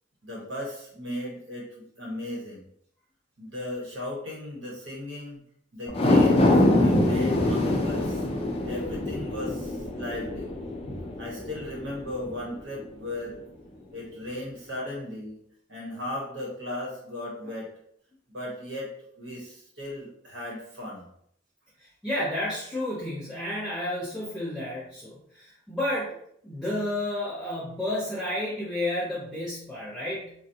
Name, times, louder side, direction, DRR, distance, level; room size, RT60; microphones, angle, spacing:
voice 1, 0.2-2.7 3.4-5.4 5.7-8.3 8.6-10.5 11.2-13.4 13.9-15.4 15.7-17.7 18.3-18.9 19.2-21.1, left 1 dB, 65° right, -3 dB, 1.2 m, -36 dB
sound 1, 5.9-12.4 12.8-12.9, left 1 dB, 25° left, 0.4 m, -24 dB
voice 2, 22.0-26.1 26.4-30.3, left 1 dB, 5° right, -10 dB, 0.8 m, -31 dB
3.4 x 2.3 x 2.7 m, 0.68 s
head